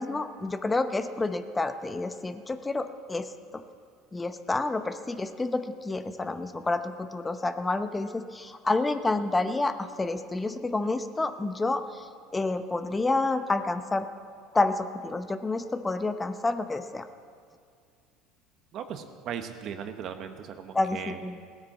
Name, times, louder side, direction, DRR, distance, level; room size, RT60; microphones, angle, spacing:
voice 1, 0.0-3.6 4.1-14.0 14.5-17.1 20.7-21.5, left 2 dB, 15° left, 9 dB, 0.9 m, -29 dB
voice 2, 18.7-21.2, right 8 dB, 55° right, 8 dB, 1.2 m, -37 dB
17.0 x 9.7 x 7.3 m, 2.2 s
hypercardioid pair, 85°, 0 cm